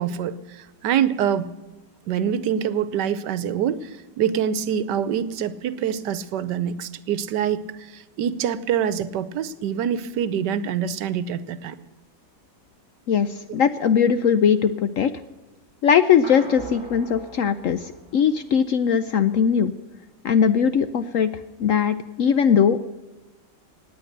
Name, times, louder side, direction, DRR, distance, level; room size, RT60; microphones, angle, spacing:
voice 1, 0.0-1.5 2.1-11.8, right 8 dB, 80° right, 15 dB, 1.4 m, -25 dB
voice 2, 13.1-15.1 15.8-19.7 20.2-21.3 21.6-22.8, left 7 dB, 65° left, 11 dB, 0.8 m, -20 dB
sound 1, 16.2-18.7, right 2 dB, 15° left, 3.6 m, -40 dB
18.0 x 9.3 x 6.6 m, 1.2 s
omnidirectional pair, 1.9 m